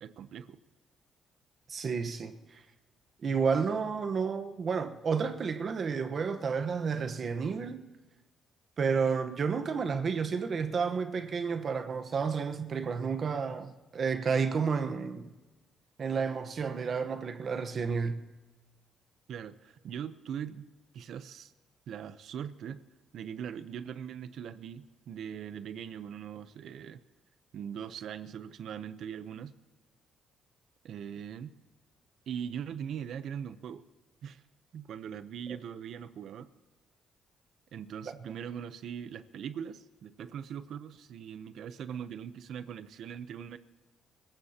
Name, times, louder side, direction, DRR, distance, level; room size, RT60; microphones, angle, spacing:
voice 1, 0.0-0.6 19.3-20.6 20.9-21.5 21.9-22.8 23.1-27.0 27.5-29.5 30.8-31.5 32.3-33.8 34.2-34.4 34.7-36.5 37.7-43.6, right 8 dB, 70° right, 0.8 m, -41 dB
voice 2, 1.7-2.4 3.2-7.8 8.8-15.3 16.0-18.2, right 5 dB, 50° right, 1.1 m, -31 dB
25.0 x 15.0 x 2.9 m
cardioid pair, 90°, 0 cm